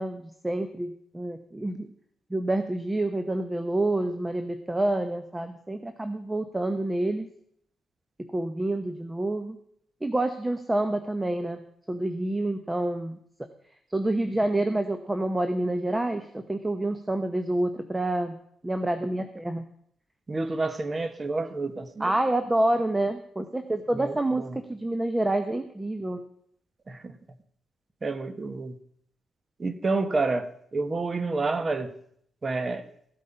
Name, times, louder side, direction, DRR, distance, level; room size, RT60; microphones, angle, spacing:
voice 1, 0.0-1.9 2.3-7.3 8.2-9.6 10.0-11.6 11.9-13.5 13.9-18.4 18.6-19.6 22.0-24.4 24.7-26.2, right 1 dB, 15° right, 9 dB, 0.9 m, -28 dB
voice 2, 20.3-22.1 23.9-24.6 26.9-27.1 28.0-28.7 29.6-31.9 32.4-32.8, right 3 dB, 35° right, 12 dB, 1.2 m, -29 dB
15.5 x 8.4 x 5.6 m, 0.68 s
cardioid pair, 85°, 0 cm